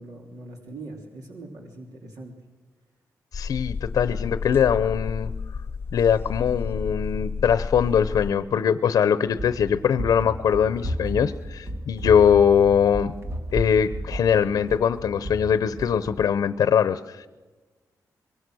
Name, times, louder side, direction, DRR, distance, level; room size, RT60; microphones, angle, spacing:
voice 1, 0.0-2.3, right 2 dB, 70° right, 1 dB, 3.3 m, -41 dB
voice 2, 3.3-5.3 5.9-13.1 13.5-17.3, left 8 dB, 75° left, 13 dB, 0.9 m, -21 dB
sound 1, 3.3-8.3, left 5 dB, 35° left, 0.8 m, -31 dB
Run, 9.3-16.3, equal, 45° right, 2.2 m, -33 dB
24.5 x 23.0 x 6.4 m, 1.2 s
wide cardioid pair, 145°, 7 cm